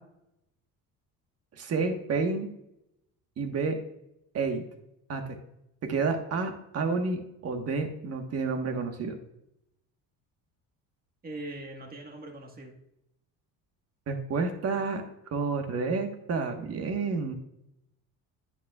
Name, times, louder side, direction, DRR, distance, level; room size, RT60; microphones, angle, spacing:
voice 1, 1.6-2.5 3.4-3.8 4.3-4.6 5.1-5.4 5.8-9.2 14.1-15.0 15.3-17.3, right 4 dB, 45° right, 5 dB, 1.4 m, -30 dB
voice 2, 11.2-12.7, right 2 dB, 25° right, 2 dB, 1.6 m, -41 dB
9.6 x 8.4 x 2.4 m, 0.83 s
cardioid pair, 135°, 35 cm